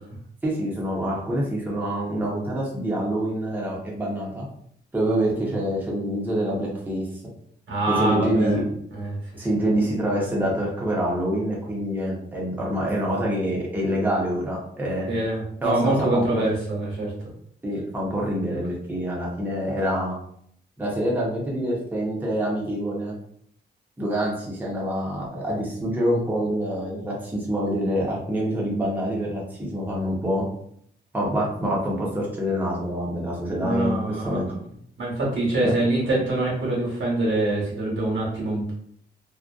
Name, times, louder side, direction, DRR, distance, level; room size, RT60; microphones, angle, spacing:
voice 1, 0.4-4.5 4.9-7.1 7.9-8.6 9.4-15.1 15.6-16.4 17.6-20.2 20.8-23.2 24.0-30.4 31.1-34.5 35.6-35.7, equal, 10° right, -4 dB, 0.6 m, -26 dB
voice 2, 7.7-8.6 8.9-9.5 15.1-17.1 33.5-34.4 35.0-38.7, right 2 dB, 90° right, -5 dB, 1.1 m, -25 dB
2.5 x 2.1 x 2.3 m, 0.67 s
wide cardioid pair, 140°, 19 cm